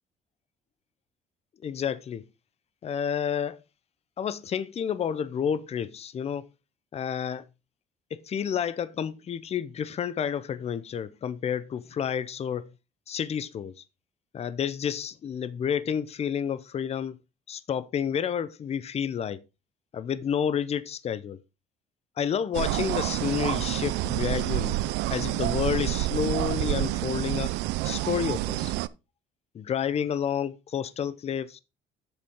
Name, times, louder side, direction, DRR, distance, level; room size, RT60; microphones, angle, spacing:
voice 1, 1.6-2.2 2.8-3.6 4.2-6.5 6.9-7.4 8.1-12.7 13.1-13.8 14.3-17.2 17.5-19.4 19.9-21.4 22.2-24.8 25.1-27.5 27.8-28.7 29.5-31.6, left 8 dB, 40° left, 0.6 m, -30 dB
sound 1, 22.5-28.9, right 17 dB, 90° right, 0.4 m, -28 dB
7.9 x 6.8 x 3.6 m
cardioid pair, 110°, 17 cm